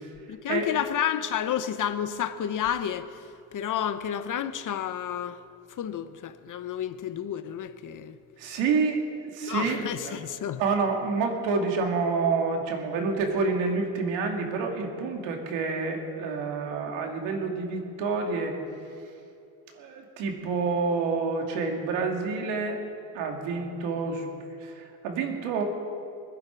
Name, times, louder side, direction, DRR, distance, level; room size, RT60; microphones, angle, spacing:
voice 1, 0.3-3.1 3.5-5.4 5.8-8.2 9.5-10.6, left 9 dB, 45° left, 1.0 m, -30 dB
voice 2, 8.4-10.2 10.6-18.6 19.7-22.8 23.1-24.3 24.6-25.6, right 4 dB, 80° right, 2.7 m, -28 dB
25.0 x 10.5 x 4.7 m
cardioid pair, 100°, 44 cm